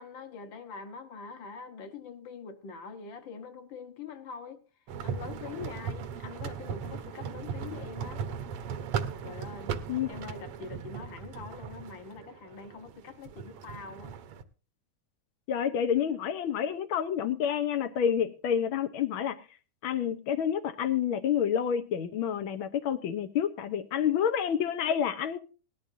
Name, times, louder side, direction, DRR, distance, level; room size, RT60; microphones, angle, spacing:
voice 1, 0.0-4.6 5.0-8.2 9.2-9.7 10.1-14.1, left 5 dB, 50° left, 1.5 m, -44 dB
water wheel, 4.9-14.4, right 7 dB, 65° right, 1.6 m, -38 dB
voice 2, 15.5-19.4 19.8-25.4, left 8 dB, 85° left, 1.1 m, -28 dB
19.0 x 12.5 x 2.7 m
omnidirectional pair, 3.5 m